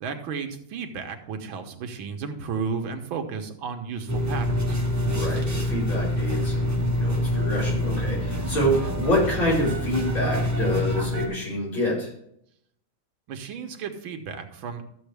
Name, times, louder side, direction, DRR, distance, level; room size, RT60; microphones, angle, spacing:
voice 1, 0.0-4.8 13.3-14.8, right 5 dB, 85° right, 5 dB, 1.8 m, -33 dB
sound 1, 4.1-11.3, left 1 dB, 20° right, 0.5 m, -26 dB
voice 2, 5.0-12.1, equal, 80° left, -7 dB, 5.4 m, -27 dB
12.5 x 7.2 x 3.4 m, 0.70 s
omnidirectional pair, 2.2 m